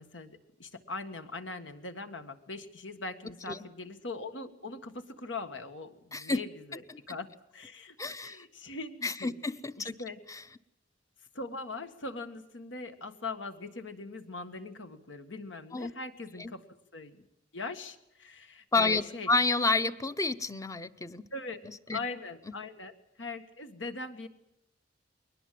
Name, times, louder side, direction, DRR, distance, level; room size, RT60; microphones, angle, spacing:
voice 1, 0.0-7.3 7.5-9.3 9.8-10.2 11.3-16.7 16.9-17.3 17.5-19.3 21.3-21.6 21.9-22.9 23.2-24.3, left 3 dB, 80° left, 8 dB, 1.7 m, -41 dB
voice 2, 6.1-6.4 8.0-8.4 9.0-9.9 10.3-10.4 15.7-15.9 16.4-16.5 18.7-21.2 21.9-22.0, left 3 dB, 15° left, 11 dB, 0.7 m, -29 dB
21.5 x 19.5 x 7.6 m, 0.82 s
head